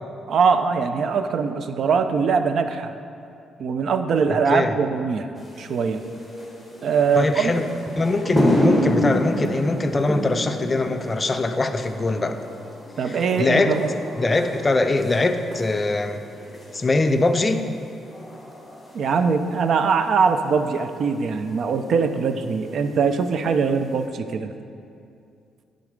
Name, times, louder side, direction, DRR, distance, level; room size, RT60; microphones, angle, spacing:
voice 1, 0.3-2.9 3.6-5.3 5.6-6.0 6.8-7.5 13.0-13.9 18.9-24.5, right 5 dB, 60° right, 9 dB, 0.4 m, -22 dB
voice 2, 4.3-4.7 7.1-7.6 8.0-12.4 13.0-13.8 14.2-16.2 16.7-17.6, left 2 dB, 25° left, 7 dB, 0.5 m, -22 dB
sound 1, 5.4-24.0, equal, ahead, 1.4 m, -30 dB
9.6 x 3.9 x 5.1 m, 2.5 s
cardioid pair, 90°, 0 cm